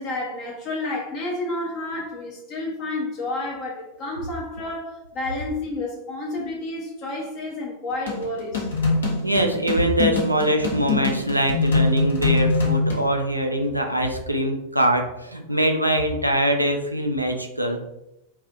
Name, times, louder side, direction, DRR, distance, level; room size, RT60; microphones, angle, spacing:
voice 1, 0.0-8.7, left 2 dB, 40° left, -2 dB, 0.6 m, -30 dB
sound 1, 8.1-13.0, left 3 dB, 65° left, 0.8 m, -23 dB
voice 2, 9.2-17.8, right 1 dB, 90° right, 3 dB, 0.4 m, -23 dB
2.4 x 2.4 x 3.7 m, 0.87 s
figure-of-eight pair, 90°, 0 cm